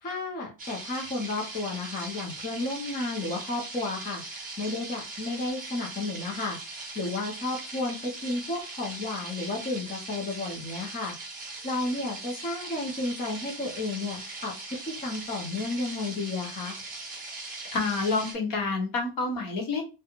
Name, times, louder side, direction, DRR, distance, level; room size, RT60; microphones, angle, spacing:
voice 1, 0.0-11.1 11.6-16.8, left 2 dB, 20° left, -1 dB, 0.5 m, -32 dB
sound 1, 0.6-18.3, right 3 dB, 20° right, 0.7 m, -40 dB
voice 2, 17.7-19.8, left 3 dB, 45° left, 3 dB, 0.9 m, -28 dB
2.4 x 2.1 x 2.9 m, 0.30 s
cardioid pair, 145°, 47 cm